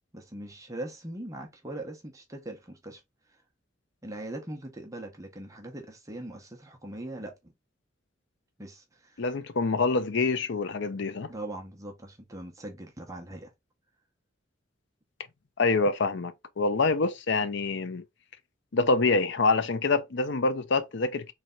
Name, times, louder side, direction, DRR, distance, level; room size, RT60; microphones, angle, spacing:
voice 1, 0.1-3.0 4.0-7.5 8.6-9.2 11.3-13.5, right 1 dB, 15° right, 0.8 m, -41 dB
voice 2, 9.2-11.3 15.6-18.0 18.7-21.3, left 3 dB, 65° left, 0.6 m, -26 dB
3.4 x 3.2 x 3.7 m
head